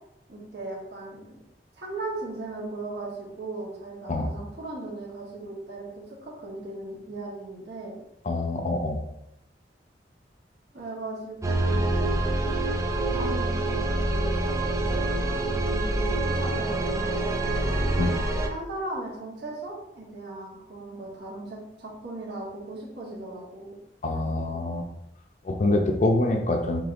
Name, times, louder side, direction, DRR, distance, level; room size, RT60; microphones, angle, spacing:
voice 1, 0.3-1.4 1.8-7.9 10.7-12.2 13.1-17.8 18.5-23.8 24.1-24.6, right 2 dB, 70° right, -4 dB, 1.0 m, -38 dB
voice 2, 8.3-9.0 18.0-18.2 24.0-24.8 25.4-26.8, left 2 dB, 40° left, 3 dB, 0.5 m, -25 dB
sound 1, 11.4-18.5, right 2 dB, 20° right, 0.3 m, -26 dB
5.0 x 3.2 x 2.4 m, 0.83 s
head